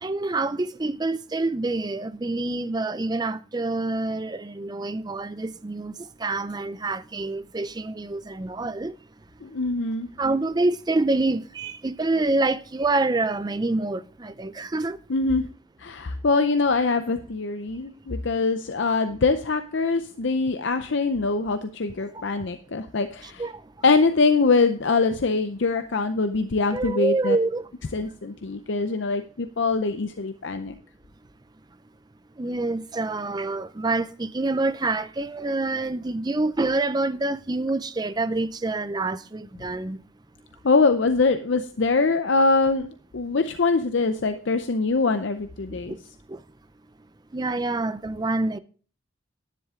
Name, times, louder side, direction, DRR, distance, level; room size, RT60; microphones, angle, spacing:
voice 1, 0.0-9.0 10.2-15.0 22.1-22.2 23.2-23.6 26.7-27.7 32.4-40.0 45.7-46.0 46.3-46.4 47.3-48.6, right 2 dB, 20° right, 0.4 m, -27 dB
voice 2, 9.4-10.1 15.1-15.4 15.8-23.4 23.8-27.4 27.9-30.7 40.6-45.9, left 3 dB, 55° left, 0.6 m, -23 dB
10.5 x 10.0 x 3.7 m
head